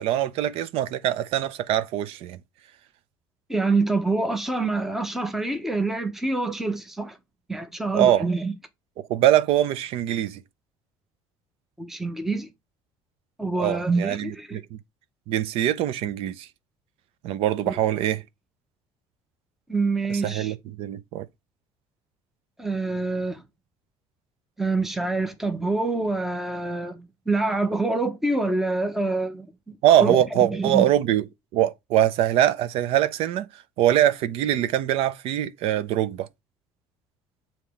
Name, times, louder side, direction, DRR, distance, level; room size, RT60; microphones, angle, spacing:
voice 1, 0.0-2.4 7.9-8.2 9.1-10.4 13.6-14.8 15.3-16.5 17.2-18.2 20.2-21.3 29.8-31.2 31.5-33.5 33.8-36.3, right 12 dB, 60° right, 0.6 m, -23 dB
voice 2, 3.5-7.2 7.5-8.5 11.8-12.5 13.4-14.6 17.7-17.8 19.7-20.5 22.6-23.4 24.6-29.5 30.0-30.9, right 3 dB, 5° right, 0.7 m, -26 dB
7.4 x 2.9 x 4.9 m
cardioid pair, 160°, 11 cm